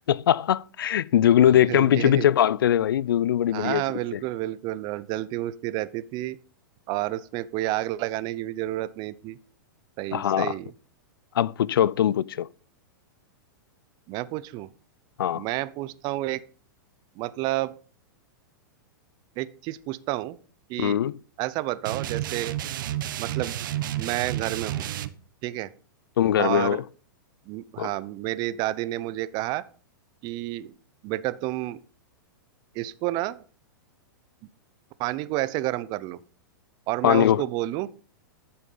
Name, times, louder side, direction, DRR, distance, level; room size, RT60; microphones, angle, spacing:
voice 1, 0.1-3.8 10.1-10.6 11.3-12.5 15.2-15.4 20.8-21.1 26.2-26.8 27.8-27.9 37.0-37.4, left 10 dB, 85° left, 0.5 m, -21 dB
voice 2, 1.5-2.3 3.5-6.4 6.9-9.4 10.0-10.7 14.1-14.7 15.3-16.4 17.2-17.8 19.4-20.4 20.7-21.0 21.4-22.5 23.1-23.5 24.0-24.9 25.4-25.7 26.4-26.8 27.5-29.6 30.2-30.7 31.0-31.8 32.7-33.4 35.0-36.2 36.9-37.9, right 16 dB, 40° right, 0.8 m, -30 dB
sound 1, 21.8-25.1, right 12 dB, 70° right, 1.0 m, -31 dB
13.5 x 7.1 x 5.5 m
hypercardioid pair, 135°, 11 cm